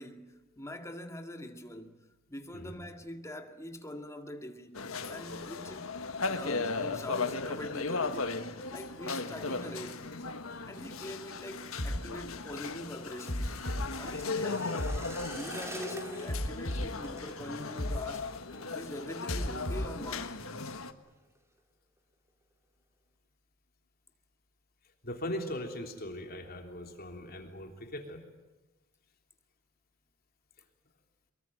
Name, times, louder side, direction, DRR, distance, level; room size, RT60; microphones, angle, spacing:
voice 1, 0.0-5.9 6.3-8.3 8.7-10.1 10.7-13.5 14.0-14.9 15.2-18.3 18.7-20.4, left 1 dB, 15° left, 2.1 m, -44 dB
sound 1, 4.7-20.9, left 4 dB, 80° left, 1.5 m, -37 dB
sound 2, 11.3-20.2 20.4-20.8 21.1-21.6 22.0-22.1, right 2 dB, 15° right, 2.3 m, -50 dB
sound 3, 11.8-12.0 12.5-12.7 13.3-15.0 15.5-15.7 16.3-18.0 18.5-18.7 19.3-20.8, equal, 65° left, 3.3 m, -36 dB
voice 2, 25.0-28.2, left 1 dB, 45° left, 3.3 m, -39 dB
23.5 x 22.5 x 9.2 m
head